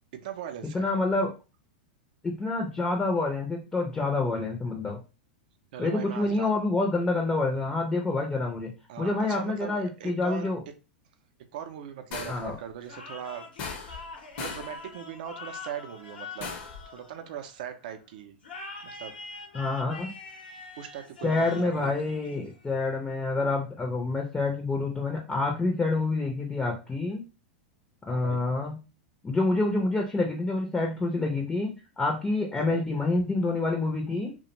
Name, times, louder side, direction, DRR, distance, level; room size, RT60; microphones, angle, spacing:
voice 1, 0.1-0.9 5.7-6.5 8.9-10.5 11.5-14.1 14.4-16.5 16.9-18.4 18.9-19.1 20.8-21.9 28.1-28.4 32.6-32.9, right 9 dB, 65° right, 7 dB, 0.5 m, -40 dB
voice 2, 0.6-1.3 2.2-5.0 5.8-8.7 9.0-10.6 12.3-12.6 19.5-20.1 21.2-27.2 28.0-28.8 29.2-34.3, left 2 dB, 15° left, 1 dB, 0.5 m, -27 dB
sound 1, 12.1-12.6 13.6-14.1 14.4-14.8 16.4-16.8, left 5 dB, 50° left, 0.7 m, -37 dB
sound 2, 12.8-17.7 18.4-22.8, left 4 dB, 85° left, 0.7 m, -44 dB
2.4 x 2.1 x 2.9 m, 0.30 s
hypercardioid pair, 105°, 5 cm